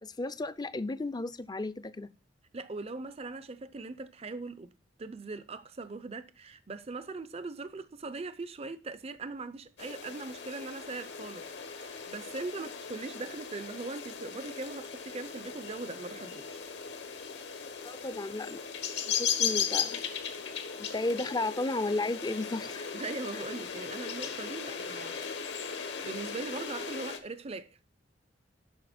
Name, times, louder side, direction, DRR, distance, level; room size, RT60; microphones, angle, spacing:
voice 1, 0.0-2.1 17.8-18.6 19.1-20.0 20.8-22.9, left 2 dB, 20° left, 0.5 m, -33 dB
voice 2, 2.5-4.7 5.0-16.6 22.9-27.8, right 3 dB, 35° right, 0.5 m, -41 dB
sound 1, 9.8-27.2, left 7 dB, 70° left, 1.4 m, -37 dB
8.7 x 6.1 x 4.2 m
head